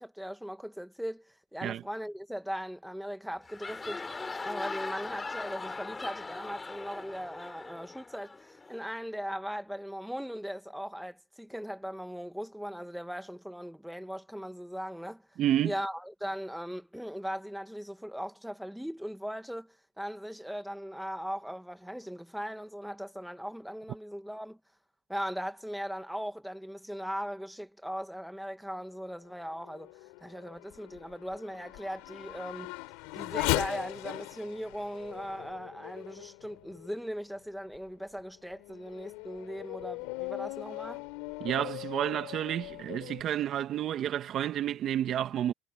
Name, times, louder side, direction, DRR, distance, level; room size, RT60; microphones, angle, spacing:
voice 1, 0.0-15.3 15.6-24.6 25.1-29.9 30.2-32.7 33.1-41.0, equal, ahead, 1.9 m, -39 dB
sound 1, 3.3-8.9, left 3 dB, 15° left, 3.1 m, -40 dB
voice 2, 15.4-15.7 41.4-45.5, right 11 dB, 45° right, 1.7 m, -30 dB
Race car auto racing / Accelerating revving vroom, 29.2-37.1 37.7-37.8 38.4-43.2, left 25 dB, 75° left, 3.4 m, -39 dB
supercardioid pair, 120°, 0 cm